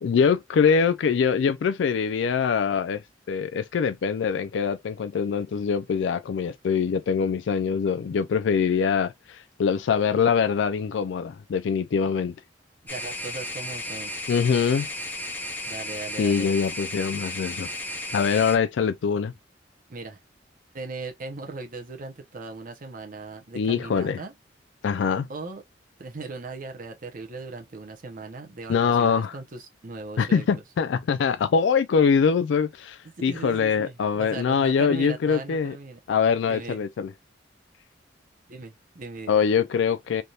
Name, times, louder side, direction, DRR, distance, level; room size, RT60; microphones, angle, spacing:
voice 1, 0.0-3.0 3.3-12.3 14.3-14.9 16.2-17.7 18.1-19.3 23.5-24.2 24.8-25.3 28.7-29.3 30.2-35.7 36.1-37.1 39.3-40.2, left 6 dB, 80° left, 0.3 m, -23 dB
sound 1, 12.9-18.6, left 1 dB, 10° left, 0.8 m, -34 dB
voice 2, 12.9-14.1 15.7-16.5 19.9-20.2 20.7-24.3 25.3-25.6 26.0-30.6 33.2-36.0 36.5-36.8 38.5-39.4, right 3 dB, 50° right, 0.7 m, -38 dB
3.4 x 2.7 x 2.3 m
head